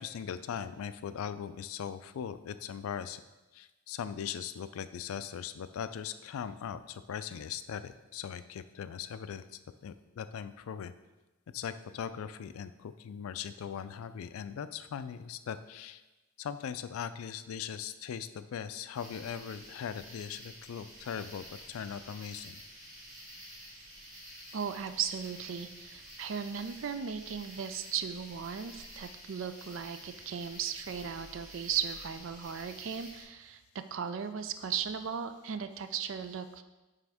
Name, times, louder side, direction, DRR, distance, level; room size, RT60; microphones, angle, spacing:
voice 1, 0.0-3.2 3.5-9.4 9.8-10.9 11.5-16.0 16.4-22.6, left 8 dB, 85° left, 12 dB, 0.3 m, -40 dB
sound 1, 18.9-33.2, equal, 40° right, 1.5 m, -50 dB
voice 2, 24.5-33.6 33.9-36.6, right 7 dB, 65° right, 10 dB, 0.4 m, -36 dB
9.0 x 3.5 x 3.5 m, 1.1 s
head